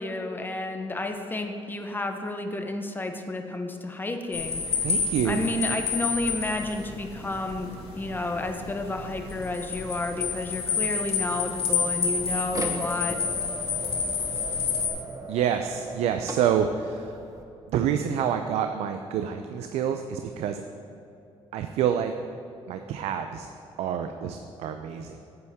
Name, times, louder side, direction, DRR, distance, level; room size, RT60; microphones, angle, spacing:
voice 1, 0.0-4.8 5.2-13.2, left 2 dB, 20° left, 5 dB, 0.8 m, -31 dB
sound 1, 4.3-14.9, left 6 dB, 70° left, 1.6 m, -29 dB
voice 2, 4.8-5.4 15.3-17.2 17.7-20.6 21.5-22.1 22.7-23.5 23.8-25.2, right 8 dB, 85° right, 7 dB, 0.4 m, -27 dB
sound 2, 11.4-17.4, right 2 dB, 30° right, 1.0 m, -38 dB
9.4 x 8.1 x 3.5 m, 2.8 s
cardioid pair, 105°, 11 cm